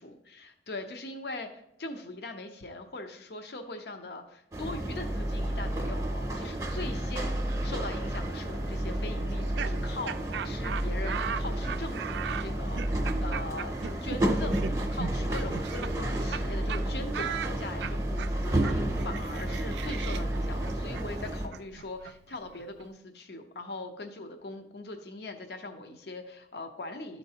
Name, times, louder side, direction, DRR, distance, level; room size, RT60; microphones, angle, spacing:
voice 1, 0.0-27.2, left 2 dB, 65° left, 6 dB, 0.7 m, -41 dB
sound 1, 4.5-21.5, right 1 dB, 15° right, 0.6 m, -31 dB
Laughter, 9.3-16.4 16.7-16.8 17.1-22.9, right 8 dB, 75° right, 0.3 m, -38 dB
12.5 x 4.4 x 2.8 m, 0.81 s
head